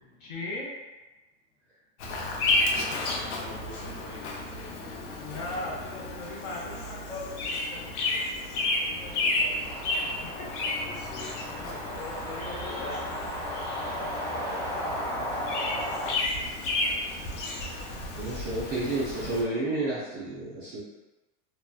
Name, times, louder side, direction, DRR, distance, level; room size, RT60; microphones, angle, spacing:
voice 1, 0.2-0.7 5.2-8.0 8.9-10.7 12.0-13.0 14.0-15.1 15.4-16.4, left 2 dB, 35° left, -3 dB, 0.4 m, -40 dB
Bird vocalization bird call bird song, 2.0-19.4, left 2 dB, 80° left, 0.6 m, -32 dB
voice 2, 3.3-5.2 10.8-12.1 12.6-14.0, left 2 dB, 60° left, -6 dB, 0.9 m, -46 dB
sound 1, 9.6-16.1, equal, ahead, 0.7 m, -35 dB
voice 3, 18.2-20.8, right 2 dB, 25° right, -10 dB, 0.4 m, -31 dB
2.6 x 2.1 x 2.2 m, 1.1 s
supercardioid pair, 170°, 35 cm